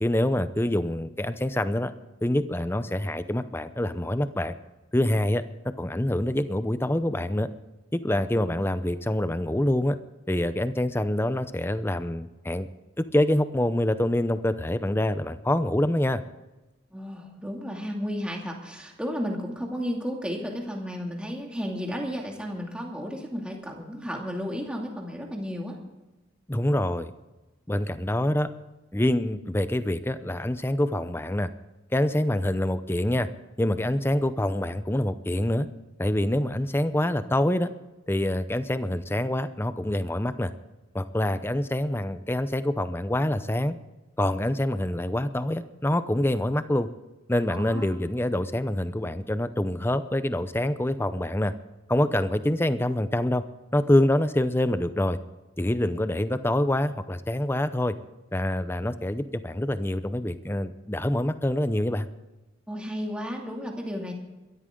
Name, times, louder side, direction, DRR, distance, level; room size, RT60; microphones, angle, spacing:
voice 1, 0.0-1.9 2.2-4.5 4.9-7.5 7.9-10.0 10.3-12.7 13.0-16.2 26.5-27.1 27.7-28.5 28.9-31.5 31.9-33.3 33.6-35.7 36.0-37.7 38.1-40.5 40.9-43.8 44.2-46.9 47.3-51.5 51.9-53.4 53.7-55.2 55.6-57.9 58.3-62.1, left 1 dB, 10° left, 12 dB, 0.6 m, -26 dB
voice 2, 16.9-25.8 47.5-47.8 62.7-64.1, equal, 5° right, 0 dB, 2.5 m, -33 dB
22.5 x 13.5 x 3.8 m, 1.1 s
head